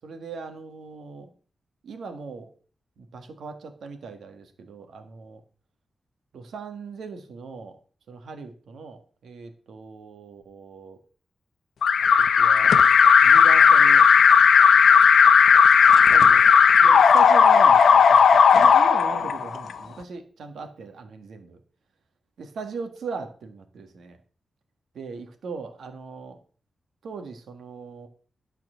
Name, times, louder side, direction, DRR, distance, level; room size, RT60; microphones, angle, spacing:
voice 1, 0.0-1.3 1.8-2.5 3.0-5.4 6.3-7.8 8.1-11.0 12.0-12.9 13.2-14.1 16.1-16.5 16.8-21.6 22.4-24.2 24.9-26.4 27.0-28.1, right 4 dB, 85° right, 7 dB, 1.5 m, -39 dB
Alarm, 11.8-19.7, left 6 dB, 75° left, 0.7 m, -15 dB
11.5 x 4.4 x 6.2 m, 0.41 s
wide cardioid pair, 145°, 0 cm